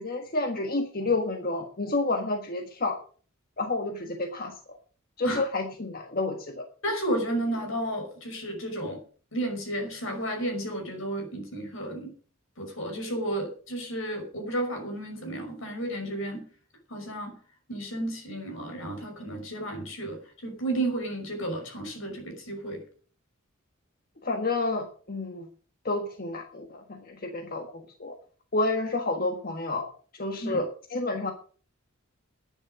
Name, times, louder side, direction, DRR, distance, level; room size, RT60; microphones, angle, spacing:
voice 1, 0.0-3.0 3.6-4.8 5.2-6.7 24.2-25.5 25.8-28.2 28.5-29.9 30.1-30.7 30.9-31.3, left 2 dB, 45° left, 4 dB, 1.5 m, -30 dB
voice 2, 6.8-9.0 9.3-12.1 12.6-16.5 16.9-17.4 17.7-22.8 30.4-30.6, right 1 dB, 75° left, 4 dB, 5.7 m, -32 dB
11.5 x 9.9 x 6.4 m, 0.43 s
head